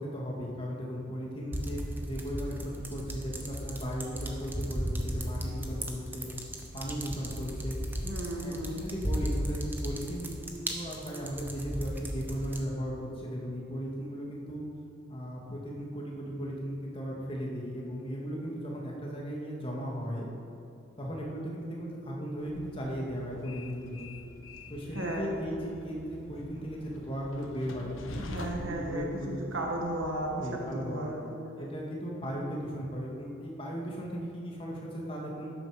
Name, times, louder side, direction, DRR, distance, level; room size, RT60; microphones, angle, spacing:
voice 1, 0.0-6.3 6.7-7.8 8.4-10.4 10.7-14.6 15.1-20.3 21.0-24.1 24.7-29.4 30.4-31.1 31.6-35.5, equal, 25° left, -3 dB, 2.3 m, -36 dB
sound 1, 1.5-12.6, equal, 10° right, 1.1 m, -36 dB
voice 2, 8.0-8.9 24.9-25.4 28.1-31.7, right 1 dB, 80° right, 0 dB, 1.7 m, -35 dB
Train, 22.4-30.7, left 2 dB, 85° left, 1.2 m, -46 dB
13.5 x 11.0 x 5.2 m, 2.7 s
head